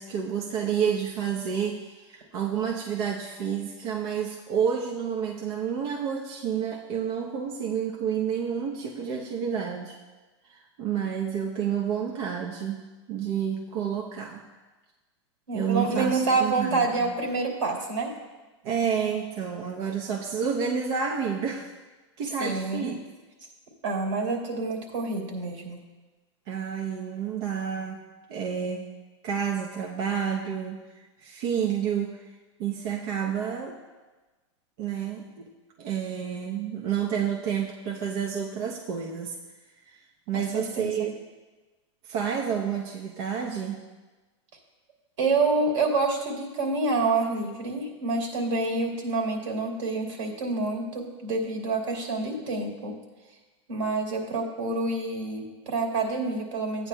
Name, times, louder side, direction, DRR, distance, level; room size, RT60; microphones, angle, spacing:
voice 1, 0.0-10.0 10.4-12.8 13.1-14.4 15.5-17.1 18.6-21.7 22.2-23.0 26.5-28.9 29.2-30.8 31.2-32.3 32.6-33.8 34.8-35.5 35.8-39.4 39.9-40.0 40.3-41.1 42.0-43.8, right 7 dB, 55° right, 0 dB, 0.8 m, -29 dB
voice 2, 15.5-18.1 22.4-22.9 23.8-25.8 40.3-41.1 45.2-52.9 53.7-56.9, right 3 dB, 85° right, 1 dB, 2.8 m, -27 dB
14.5 x 9.3 x 2.3 m, 1.2 s
supercardioid pair, 140°, 15 cm